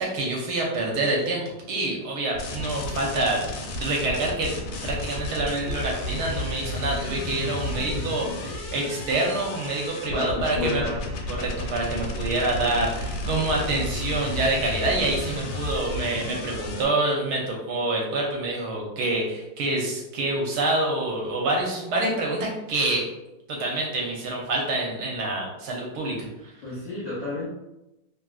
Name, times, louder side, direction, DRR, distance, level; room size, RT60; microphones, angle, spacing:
voice 1, 0.0-1.4 1.7-3.4 3.8-4.5 4.8-10.8 11.3-23.1 23.5-26.5, right 2 dB, 70° right, -1 dB, 1.1 m, -26 dB
sound 1, 2.3-16.8, left 1 dB, 90° left, 1.3 m, -32 dB
voice 2, 7.7-8.2 10.1-11.1 26.6-27.5, left 2 dB, 65° left, -6 dB, 0.7 m, -32 dB
3.0 x 2.5 x 2.3 m, 0.94 s
omnidirectional pair, 2.0 m